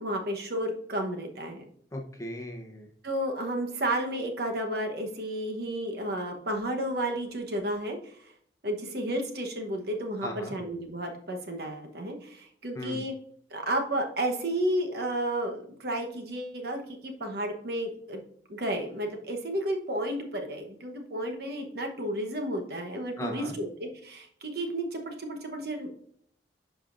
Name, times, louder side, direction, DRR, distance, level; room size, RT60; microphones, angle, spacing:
voice 1, 0.0-1.6 3.0-8.3 8.6-13.1 13.5-18.2 18.5-25.9, right 1 dB, 55° right, 3 dB, 1.0 m, -32 dB
voice 2, 1.9-2.9 10.2-10.6 12.7-13.0 23.2-23.6, left 1 dB, 15° left, 1 dB, 0.8 m, -37 dB
11.0 x 5.1 x 2.6 m, 0.63 s
head